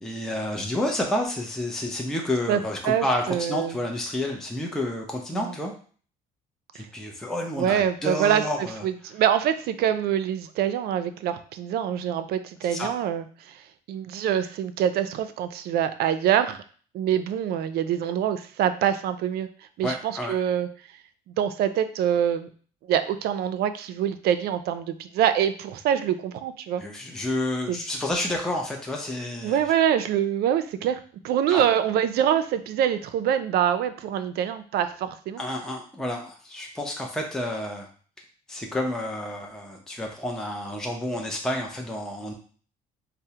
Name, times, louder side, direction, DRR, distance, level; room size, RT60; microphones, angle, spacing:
voice 1, 0.0-5.7 6.7-8.8 12.6-12.9 19.8-20.4 26.8-29.7 31.5-31.6 35.4-37.9 38.5-42.3, left 1 dB, 5° left, 1 dB, 0.5 m, -30 dB
voice 2, 2.5-3.8 5.3-5.5 6.7-6.9 7.6-8.4 8.8-13.6 13.9-16.6 16.9-19.5 19.8-20.7 21.4-22.5 22.9-26.8 27.7-27.8 29.4-31.0 31.2-35.4, right 9 dB, 70° right, 10 dB, 0.4 m, -25 dB
4.5 x 2.0 x 2.8 m, 0.43 s
cardioid pair, 110°, 17 cm